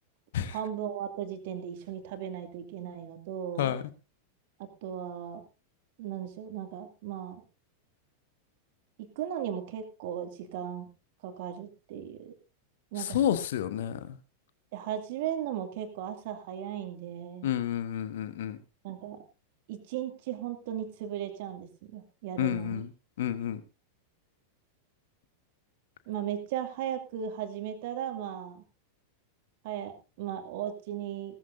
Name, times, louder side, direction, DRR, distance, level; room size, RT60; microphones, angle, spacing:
voice 1, 0.4-3.7 4.6-5.4 6.0-7.4 9.2-10.9 11.2-12.3 12.9-13.2 14.7-17.5 18.8-19.2 19.7-22.8 26.1-28.6 29.6-31.4, right 10 dB, 50° right, 6 dB, 2.3 m, -36 dB
voice 2, 13.0-14.2 17.4-18.6 22.4-22.9 23.2-23.6, left 10 dB, 55° left, 12 dB, 1.2 m, -30 dB
18.0 x 14.0 x 2.7 m, 0.31 s
figure-of-eight pair, 90°, 0 cm